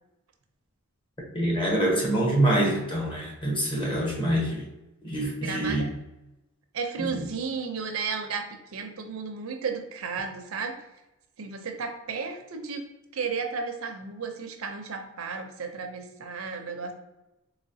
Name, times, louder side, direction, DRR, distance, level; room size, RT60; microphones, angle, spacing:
voice 1, 1.3-4.6 5.0-5.9 7.0-7.1, right 1 dB, 25° left, -1 dB, 1.0 m, -25 dB
voice 2, 5.4-5.9 6.7-10.7 11.4-12.8 13.1-16.9, right 5 dB, 80° right, 5 dB, 0.6 m, -33 dB
4.0 x 2.9 x 2.7 m, 0.96 s
head